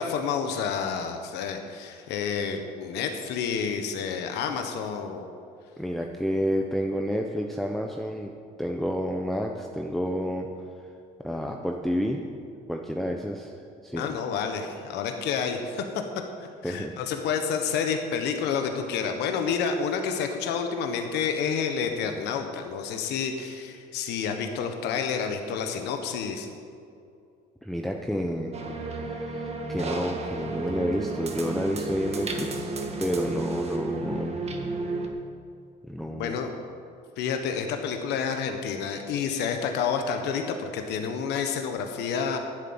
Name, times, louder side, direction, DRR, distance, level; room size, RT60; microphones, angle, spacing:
voice 1, 0.0-5.3 13.9-15.8 16.6-26.5 36.1-36.5 37.2-42.4, left 6 dB, 85° left, 5 dB, 1.2 m, -29 dB
voice 2, 5.8-8.3 8.6-10.5 11.2-12.2 12.7-14.1 16.6-16.9 27.6-28.5 28.9-32.7 33.0-34.5 35.9-36.4, equal, ahead, 1 dB, 0.8 m, -30 dB
sound 1, 28.5-35.1, right 2 dB, 40° right, 1.8 m, -32 dB
11.0 x 8.2 x 8.8 m, 2.4 s
cardioid pair, 110°, 17 cm